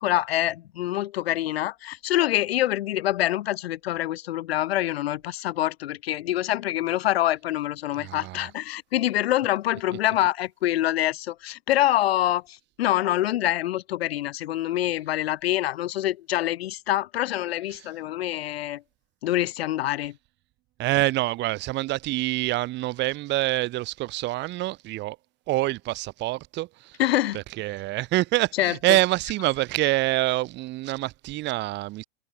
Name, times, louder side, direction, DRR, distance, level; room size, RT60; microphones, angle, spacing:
voice 1, 0.0-18.8 19.2-20.1 27.0-27.4 28.6-28.7, left 14 dB, 85° left, 1.7 m, -25 dB
voice 2, 8.0-8.5 17.7-17.9 20.8-25.2 25.5-27.0 27.3-32.0, right 18 dB, 35° right, 0.8 m, -26 dB
supercardioid pair, 125°, 30 cm